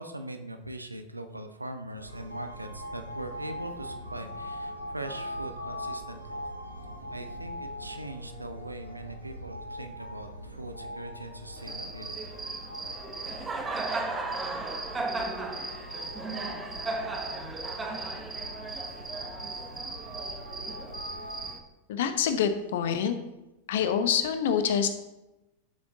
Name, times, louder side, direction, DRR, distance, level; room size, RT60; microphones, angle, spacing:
voice 1, 0.0-6.4 7.1-12.3, right 1 dB, 85° right, 7 dB, 0.7 m, -41 dB
sound 1, 1.9-21.5, equal, 90° left, 1.2 m, -41 dB
Cricket, 11.6-21.6, right 3 dB, 15° right, 1.0 m, -36 dB
voice 2, 21.9-23.2 23.7-24.9, left 8 dB, 55° left, 9 dB, 0.9 m, -26 dB
11.0 x 7.1 x 2.8 m, 0.97 s
figure-of-eight pair, 90°, 0 cm